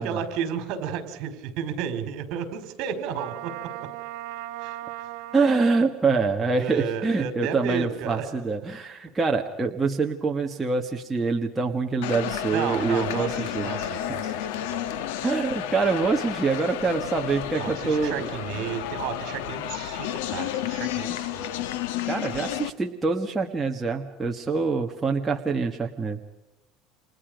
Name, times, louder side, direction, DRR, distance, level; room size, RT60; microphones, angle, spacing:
voice 1, 0.0-3.5 4.6-5.1 6.5-8.3 12.5-14.9 17.6-21.5, right 7 dB, 50° right, 9 dB, 4.8 m, -33 dB
Trumpet, 3.1-5.7, right 15 dB, 70° right, 1.7 m, -37 dB
voice 2, 5.3-13.3 13.5-13.7 15.2-18.3 22.1-26.2, right 4 dB, 10° right, 1 dB, 1.5 m, -25 dB
sound 1, 12.0-22.7, left 11 dB, 85° left, 1.5 m, -31 dB
30.0 x 27.5 x 5.2 m, 0.95 s
cardioid pair, 160°, 0 cm